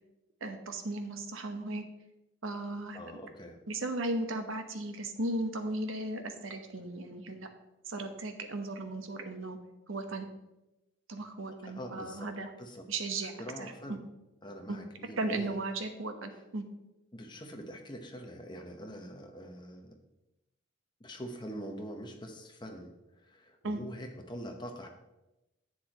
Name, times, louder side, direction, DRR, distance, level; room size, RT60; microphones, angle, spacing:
voice 1, 0.4-1.8 2.4-3.0 3.7-7.5 7.9-9.6 9.9-10.3 11.1-12.5 12.9-13.3 13.6-13.7 14.7-14.8 15.2-16.6 23.6-23.8, right 2 dB, 75° right, 6 dB, 1.0 m, -36 dB
voice 2, 2.9-3.6 11.6-12.3 12.6-12.8 13.4-14.0 14.4-15.5 17.1-20.0 21.0-24.9, equal, 20° left, 3 dB, 1.0 m, -44 dB
10.5 x 8.0 x 3.0 m, 0.96 s
head